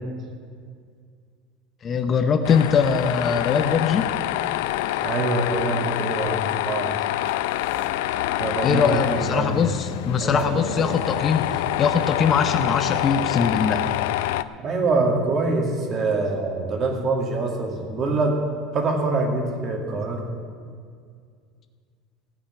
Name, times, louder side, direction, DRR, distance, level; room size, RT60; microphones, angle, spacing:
voice 1, 1.8-4.1 8.6-13.9, left 6 dB, 30° left, 8 dB, 0.7 m, -22 dB
Tools, 2.4-14.4, left 14 dB, 85° left, 0.4 m, -26 dB
voice 2, 5.0-6.9 8.4-9.6 10.2-11.2 14.6-18.4 18.7-20.2, right 3 dB, 35° right, 2 dB, 2.2 m, -25 dB
16.0 x 5.7 x 10.0 m, 2.1 s
cardioid pair, 145°, 0 cm